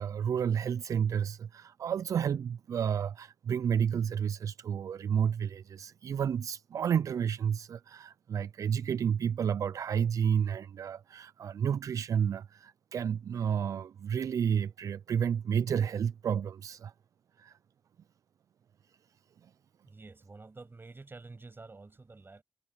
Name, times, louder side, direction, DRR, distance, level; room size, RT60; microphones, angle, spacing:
voice 1, 0.0-16.9 17.4-17.6, right 8 dB, 70° right, 0.4 m, -31 dB
voice 2, 19.8-22.4, right 3 dB, 40° right, 7.6 m, -49 dB
supercardioid pair, 45°, 6 cm